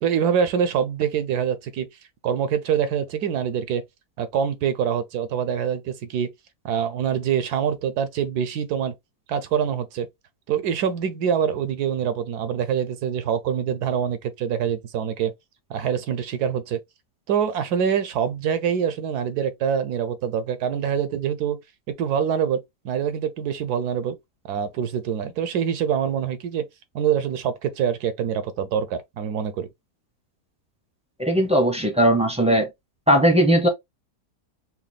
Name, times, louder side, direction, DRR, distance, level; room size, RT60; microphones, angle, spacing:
voice 1, 0.0-1.9 2.2-3.8 4.2-6.3 6.6-8.9 9.3-10.1 10.5-15.3 15.7-16.8 17.3-21.6 22.0-22.6 22.8-24.2 24.4-26.7 26.9-29.7, right 8 dB, 75° right, 1.2 m, -25 dB
voice 2, 31.2-32.7 33.1-33.7, equal, 5° right, 0.7 m, -18 dB
5.9 x 2.3 x 2.2 m
omnidirectional pair, 1.8 m